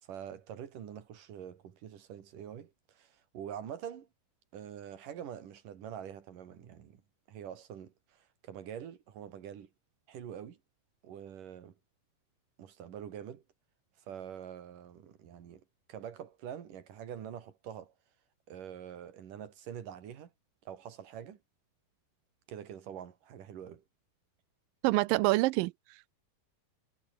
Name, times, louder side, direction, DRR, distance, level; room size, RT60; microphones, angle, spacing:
voice 1, 0.0-4.1 4.5-7.0 7.3-9.7 10.1-10.6 11.0-11.7 12.6-13.4 14.1-15.6 15.9-17.9 18.5-20.3 20.7-21.4 22.5-23.8, right 9 dB, 60° right, 3.8 m, -45 dB
voice 2, 24.8-26.1, right 21 dB, 80° right, 2.1 m, -27 dB
omnidirectional pair, 4.3 m